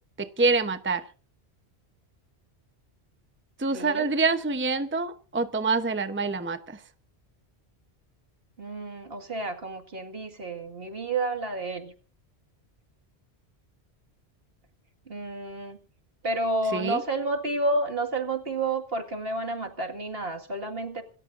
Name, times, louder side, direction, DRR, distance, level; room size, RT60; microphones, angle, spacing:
voice 1, 0.2-1.0 3.6-6.8 16.7-17.0, right 3 dB, 10° right, 0.8 m, -26 dB
voice 2, 3.7-4.1 8.6-11.9 15.1-15.8 16.2-21.0, right 2 dB, 60° right, 2.2 m, -30 dB
27.0 x 14.0 x 2.6 m
omnidirectional pair, 1.1 m